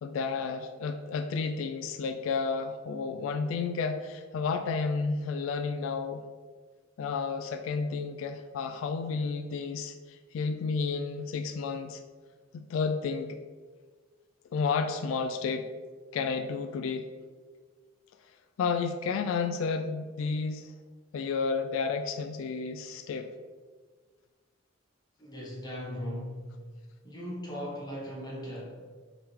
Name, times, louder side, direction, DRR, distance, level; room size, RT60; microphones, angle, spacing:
voice 1, 0.0-6.2 7.0-12.0 12.5-13.4 14.5-15.7 16.1-17.2 18.6-20.7 21.1-23.3, left 5 dB, 85° left, 7 dB, 0.3 m, -31 dB
voice 2, 25.2-26.5 27.0-28.8, equal, 20° left, -5 dB, 1.2 m, -38 dB
3.6 x 3.3 x 4.4 m, 1.5 s
head